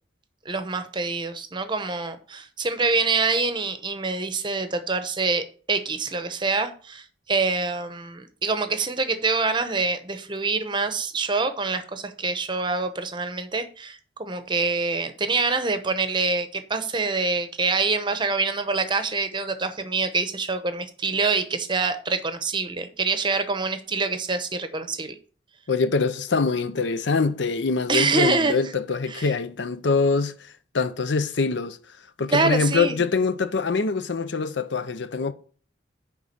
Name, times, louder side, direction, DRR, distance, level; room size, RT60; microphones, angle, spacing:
voice 1, 0.5-25.1 27.9-28.7 29.1-29.3 32.3-33.0, right 3 dB, 25° right, 0.8 m, -25 dB
voice 2, 25.7-30.3 30.7-31.8 32.2-35.3, left 4 dB, 70° left, 0.6 m, -24 dB
9.4 x 3.7 x 5.4 m
head